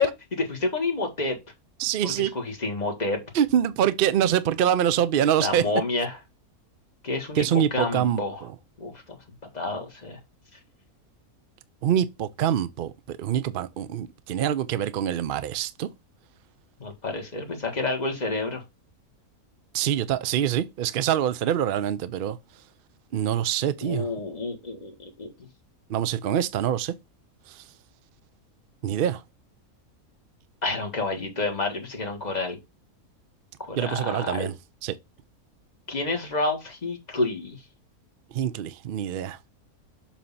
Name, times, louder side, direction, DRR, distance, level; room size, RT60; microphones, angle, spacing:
voice 1, 0.0-1.4 2.0-3.2 5.4-6.2 7.0-8.4 8.8-9.2 9.5-10.2 16.8-18.6 23.8-25.3 30.6-32.6 33.6-34.5 35.9-37.6, left 3 dB, 30° left, 1.5 m, -29 dB
voice 2, 1.8-2.3 3.3-5.6 7.4-8.2 11.8-15.9 19.7-22.4 23.1-24.1 25.9-26.9 27.5-27.6 28.8-29.2 33.8-34.5 34.8-34.9 38.3-39.4, right 10 dB, 60° right, 0.5 m, -25 dB
7.4 x 2.8 x 5.5 m
omnidirectional pair, 1.5 m